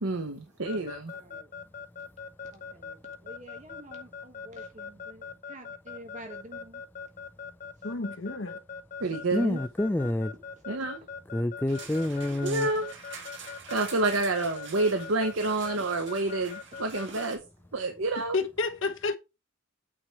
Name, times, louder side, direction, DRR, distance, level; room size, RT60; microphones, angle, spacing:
voice 1, 0.0-1.0 9.0-9.6 10.7-11.0 12.4-12.9 13.7-17.4 17.7-18.4, right 2 dB, 75° right, 1.0 m, -28 dB
Keyboard (musical) / Alarm, 0.7-17.3, left 6 dB, 40° left, 0.7 m, -41 dB
voice 2, 2.5-5.2 5.5-6.8 11.7-11.9 14.0-14.3 17.1-17.2, right 1 dB, 35° right, 1.3 m, -48 dB
voice 3, 7.8-8.6 18.3-19.2, left 3 dB, 65° left, 1.0 m, -30 dB
voice 4, 9.3-10.3 11.3-12.7, left 1 dB, 10° left, 0.3 m, -28 dB
sound 1, 11.7-17.4, right 5 dB, 60° right, 2.2 m, -45 dB
8.8 x 4.3 x 4.6 m
head